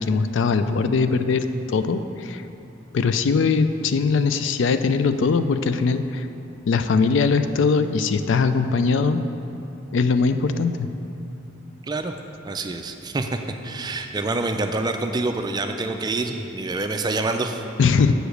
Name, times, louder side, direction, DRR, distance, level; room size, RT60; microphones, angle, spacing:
voice 1, 0.0-2.4 2.9-6.3 6.7-9.2 9.9-10.9 17.8-18.1, left 4 dB, 65° left, 10 dB, 0.4 m, -21 dB
voice 2, 12.4-13.4 13.6-17.6, right 2 dB, 20° right, 6 dB, 0.4 m, -26 dB
7.9 x 4.9 x 6.5 m, 2.9 s
head